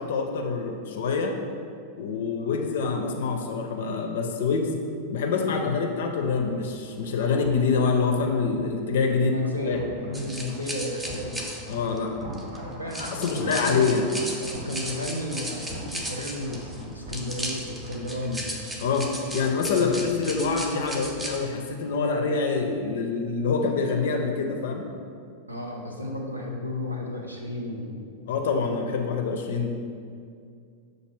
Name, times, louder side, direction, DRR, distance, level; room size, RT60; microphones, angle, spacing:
voice 1, 0.0-1.4 2.0-4.8 5.1-9.3 9.7-10.1 11.7-12.1 13.2-14.1 18.8-24.9 28.3-29.7, left 4 dB, 60° left, 3 dB, 0.4 m, -26 dB
sound 1, 5.9-19.7 19.9-20.1, right 1 dB, 55° right, 0.8 m, -43 dB
voice 2, 9.1-11.5 12.6-13.9 14.4-18.5 19.7-20.1 25.5-28.1, left 1 dB, 85° right, 0 dB, 0.5 m, -33 dB
sound 2, 10.1-21.4, right 1 dB, 10° right, 0.5 m, -36 dB
5.8 x 2.6 x 3.1 m, 2.3 s
figure-of-eight pair, 90°, 0 cm